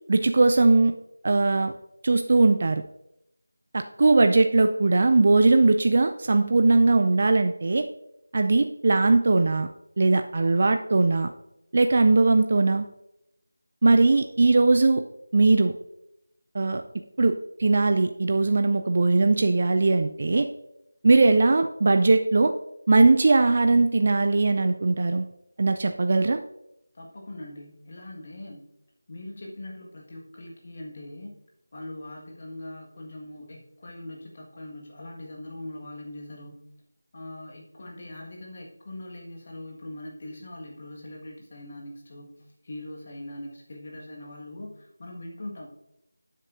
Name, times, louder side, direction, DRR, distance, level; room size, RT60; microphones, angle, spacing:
voice 1, 0.1-0.9 1.2-1.7 2.0-2.8 3.7-7.8 8.3-9.7 10.0-11.3 11.7-12.9 13.8-15.0 15.3-15.7 16.5-16.8 17.2-20.5 21.0-22.5 22.9-25.2 25.6-26.4, right 3 dB, 40° right, 7 dB, 0.4 m, -20 dB
voice 2, 26.9-28.7 29.1-31.3 31.7-36.7 37.1-45.7, left 1 dB, 35° left, -1 dB, 1.6 m, -41 dB
11.5 x 8.1 x 2.6 m, 0.84 s
figure-of-eight pair, 165°, 0 cm